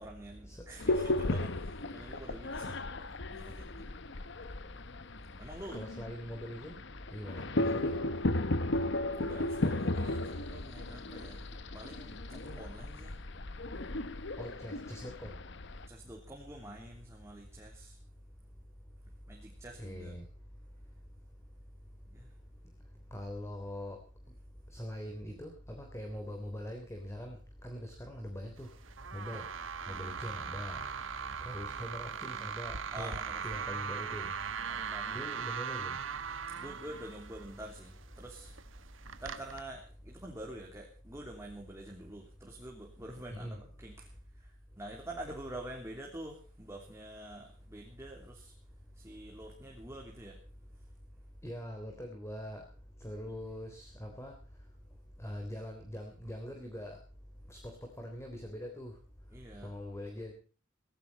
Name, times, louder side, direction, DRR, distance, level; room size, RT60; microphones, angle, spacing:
voice 1, 0.0-2.8 3.3-3.9 5.4-5.8 9.1-13.2 15.9-18.0 19.3-20.2 22.1-22.3 29.3-29.5 29.9-30.1 32.2-32.5 32.9-33.8 34.6-35.3 36.5-38.5 39.2-48.5 48.9-50.4 59.3-59.8, right 1 dB, 15° right, 0 dB, 3.2 m, -47 dB
sound 1, 0.8-15.9, left 2 dB, 65° left, 1.1 m, -35 dB
voice 2, 5.7-6.8 7.1-8.0 14.4-15.4 19.8-20.2 23.1-24.0 24.7-28.7 29.1-29.5 29.9-30.8 31.4-33.1 33.4-34.3 35.1-36.0 43.3-43.6 51.4-52.6 53.0-54.3 55.2-57.0 57.5-58.9 59.6-60.3, equal, 15° left, 4 dB, 3.5 m, -42 dB
sound 2, 28.6-39.6, right 6 dB, 85° right, 1.4 m, -40 dB
17.5 x 16.5 x 4.2 m, 0.39 s
head